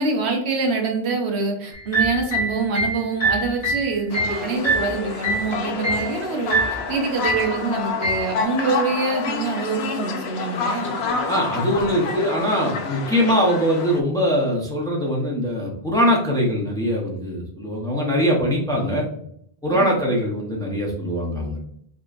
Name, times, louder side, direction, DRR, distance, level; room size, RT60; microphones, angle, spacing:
voice 1, 0.0-11.0 19.7-20.0, right 4 dB, 80° right, 3 dB, 1.1 m, -25 dB
sound 1, 1.7-5.5 5.8-6.1 6.5-6.9 7.2-7.6 8.0-8.3, right 1 dB, 50° left, 1.5 m, -23 dB
sound 2, 4.1-14.0, left 4 dB, 75° left, 0.8 m, -29 dB
voice 2, 11.3-19.1 19.6-21.6, equal, 5° left, -2 dB, 0.8 m, -22 dB
4.9 x 2.8 x 2.5 m, 0.69 s
omnidirectional pair, 1.1 m